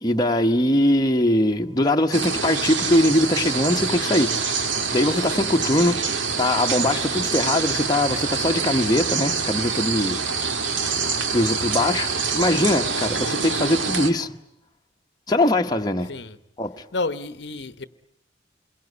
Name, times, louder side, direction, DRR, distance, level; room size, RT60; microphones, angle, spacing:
voice 1, 0.0-6.0 6.4-10.2 11.3-14.3 15.3-16.1 16.6-16.8, left 1 dB, 20° left, 1.0 m, -21 dB
sound 1, 2.1-14.1, right 5 dB, 90° right, 1.9 m, -26 dB
voice 2, 16.9-17.8, left 3 dB, 65° left, 1.0 m, -30 dB
27.0 x 22.5 x 9.6 m
head